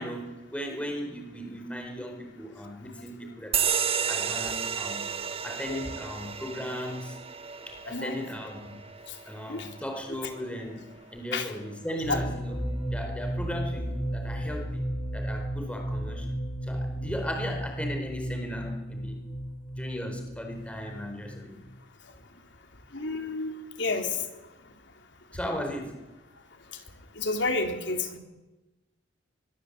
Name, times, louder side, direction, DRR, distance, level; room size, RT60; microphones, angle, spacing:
voice 1, 0.0-3.7 4.1-5.0 5.4-7.2 7.7-8.8 9.3-12.6 12.9-14.9 15.1-16.3 16.6-19.2 19.8-21.6 25.3-26.0, equal, 5° left, 3 dB, 4.4 m, -37 dB
sound 1, 3.5-10.6, right 7 dB, 30° right, 0.9 m, -32 dB
voice 2, 7.9-8.2 9.5-9.7 11.3-11.5 12.1-12.2 22.9-23.5 23.8-24.2 27.2-28.2, left 3 dB, 65° left, 4 dB, 3.8 m, -30 dB
sound 2, 12.0-21.7, equal, 25° left, 5.7 m, -34 dB
23.5 x 22.5 x 8.2 m, 1.1 s
head